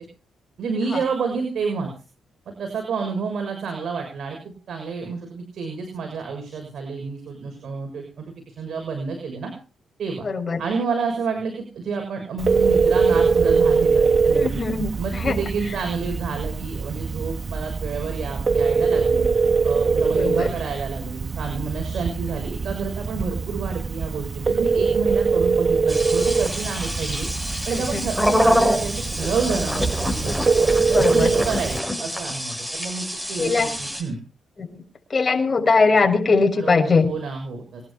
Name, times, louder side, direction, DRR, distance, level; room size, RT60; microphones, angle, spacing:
voice 1, 0.6-1.9 2.6-9.5 10.0-10.3 10.6-14.6 15.0-19.3 19.6-27.3 27.6-30.4 30.9-33.5 33.8-34.2 36.6-37.8, right 5 dB, 65° right, 4 dB, 6.6 m, -29 dB
voice 2, 10.2-10.6 14.3-15.4 20.1-20.6 27.7-28.0 30.9-31.4 33.4-33.8 34.6-34.9 35.1-37.1, left 4 dB, 40° left, 2 dB, 6.8 m, -21 dB
Telephone, 12.4-31.8, right 4 dB, 45° right, 1.2 m, -22 dB
sound 1, 25.9-34.0, equal, 5° right, 8.0 m, -26 dB
24.5 x 11.5 x 5.0 m, 0.34 s
supercardioid pair, 55°, 0 cm